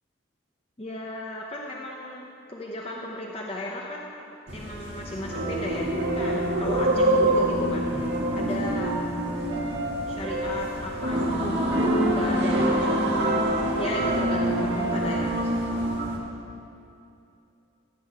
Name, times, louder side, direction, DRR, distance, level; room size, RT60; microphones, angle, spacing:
voice 1, 0.8-7.9 8.3-8.9 10.1-13.4 13.8-15.6, left 1 dB, 30° left, -1 dB, 0.8 m, -35 dB
sound 1, 4.5-16.2, right 1 dB, 60° right, 2.2 m, -25 dB
14.0 x 6.3 x 8.3 m, 2.6 s
head